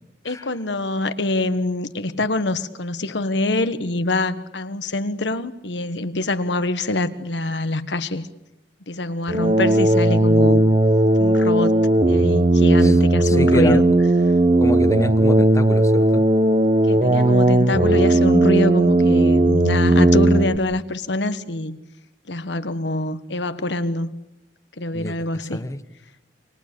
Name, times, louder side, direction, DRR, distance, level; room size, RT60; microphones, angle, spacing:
voice 1, 0.2-8.3 8.9-10.6 11.2-13.8 16.8-21.8 22.3-24.2 24.8-25.7, left 2 dB, 80° left, 11 dB, 1.4 m, -25 dB
sound 1, 9.3-20.6, right 1 dB, 35° right, 1.2 m, -16 dB
voice 2, 13.2-13.8 14.6-16.3 24.9-25.2 25.5-25.8, left 1 dB, 20° left, 12 dB, 1.1 m, -27 dB
29.0 x 25.5 x 6.9 m, 0.94 s
head